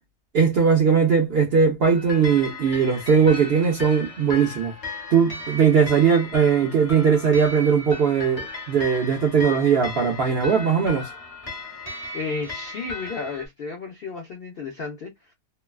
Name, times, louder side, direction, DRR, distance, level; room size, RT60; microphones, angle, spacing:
voice 1, 0.3-4.7 5.1-11.1, right 6 dB, 65° right, 0.6 m, -19 dB
sound 1, 1.8-13.5, left 3 dB, 25° left, 0.8 m, -36 dB
voice 2, 12.1-15.3, left 4 dB, 60° left, 0.6 m, -33 dB
3.0 x 2.2 x 2.3 m
omnidirectional pair, 1.7 m